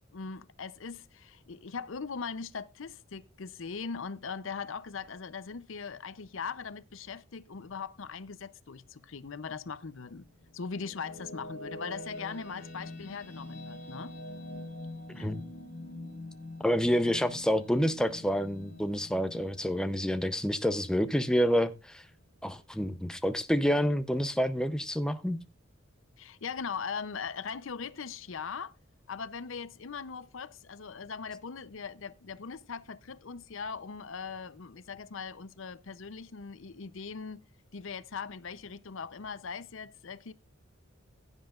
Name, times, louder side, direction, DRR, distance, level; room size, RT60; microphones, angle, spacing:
voice 1, 0.1-10.2 10.5-14.1 15.2-15.3 26.2-28.7 29.1-37.4 37.7-40.3, left 5 dB, 70° left, 0.6 m, -40 dB
sound 1, 10.2-21.5, left 1 dB, 45° left, 4.4 m, -45 dB
voice 2, 15.1-15.4 16.6-22.0 22.4-25.4, equal, 5° left, 0.6 m, -28 dB
15.5 x 9.9 x 2.4 m
head